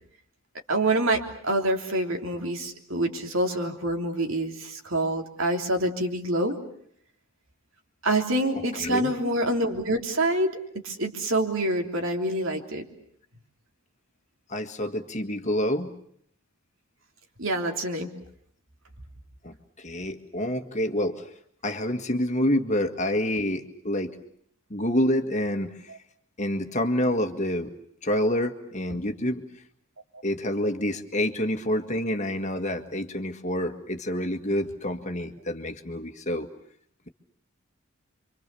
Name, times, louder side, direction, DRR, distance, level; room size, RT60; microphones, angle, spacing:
voice 1, 0.7-6.6 8.0-10.6 10.8-12.9 17.4-18.1 28.9-29.0, right 1 dB, 65° right, 3 dB, 3.4 m, -26 dB
voice 2, 8.8-9.3 14.5-15.9 19.4-21.3 21.6-24.2 24.7-25.7 26.4-27.7 28.0-29.4 30.2-36.5, left 1 dB, 35° left, 6 dB, 1.8 m, -27 dB
28.0 x 25.0 x 7.0 m, 0.68 s
head